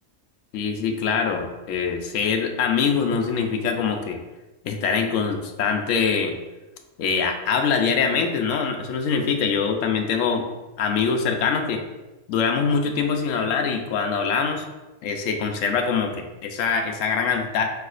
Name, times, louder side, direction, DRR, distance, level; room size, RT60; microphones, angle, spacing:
voice 1, 0.5-4.2 4.6-6.3 7.0-10.4 10.8-11.8 12.3-14.6 15.0-17.7, left 5 dB, 80° left, 4 dB, 1.0 m, -23 dB
4.6 x 4.2 x 2.4 m, 1.1 s
omnidirectional pair, 1.3 m